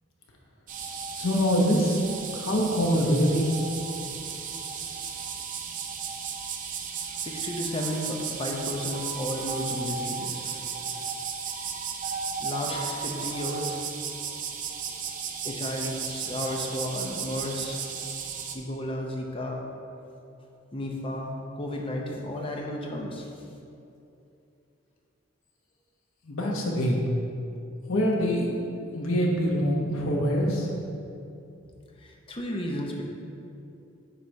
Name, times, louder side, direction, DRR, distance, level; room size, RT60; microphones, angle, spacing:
sound 1, 0.7-18.6, right 6 dB, 40° right, 0.5 m, -34 dB
voice 1, 1.2-2.0 2.3-3.7 26.3-27.0 27.9-28.5 28.9-30.7, equal, 90° left, -1 dB, 1.0 m, -24 dB
voice 2, 7.2-10.6 12.4-13.8 15.4-17.8 18.5-19.6 20.7-23.3 32.0-33.0, left 1 dB, 25° left, 0 dB, 0.7 m, -33 dB
8.1 x 3.0 x 5.2 m, 2.7 s
head